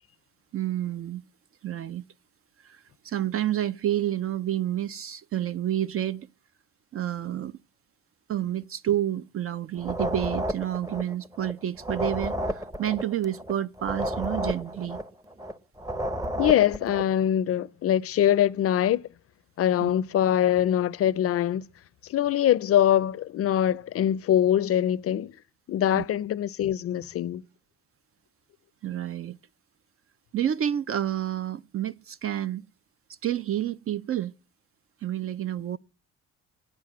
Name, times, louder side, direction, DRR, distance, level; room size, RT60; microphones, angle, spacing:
voice 1, 0.5-1.2 1.6-2.0 2.6-6.3 6.9-7.5 8.3-15.0 19.8-19.9 25.9-26.0 28.8-29.4 30.3-32.6 33.2-34.3 35.0-35.8, right 11 dB, 50° right, 0.4 m, -29 dB
sound 1, 9.8-11.5 11.8-15.5 15.8-17.1, equal, 10° right, 0.7 m, -32 dB
voice 2, 16.4-19.0 19.6-21.6 22.1-25.3 25.7-27.4, left 11 dB, 50° left, 0.5 m, -23 dB
9.0 x 7.5 x 6.1 m
cardioid pair, 90°, 30 cm